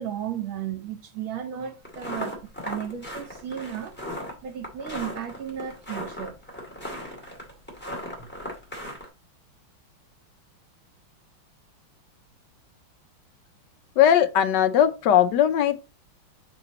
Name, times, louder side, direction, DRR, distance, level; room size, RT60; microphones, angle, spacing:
voice 1, 0.0-4.0 4.4-6.4, right 9 dB, 75° right, 1.9 m, -34 dB
sound 1, 1.8-9.1, equal, 5° left, 2.0 m, -36 dB
voice 2, 14.0-15.8, left 10 dB, 70° left, 1.1 m, -19 dB
6.1 x 3.9 x 4.2 m
omnidirectional pair, 2.3 m